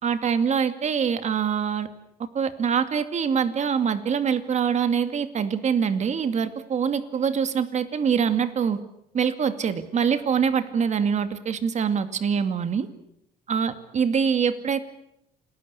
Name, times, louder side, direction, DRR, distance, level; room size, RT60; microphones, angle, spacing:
voice 1, 0.0-1.9 2.3-8.8 9.1-12.9 13.5-14.8, right 7 dB, 45° right, 10 dB, 2.4 m, -24 dB
28.0 x 20.0 x 8.4 m, 0.81 s
cardioid pair, 110°, 17 cm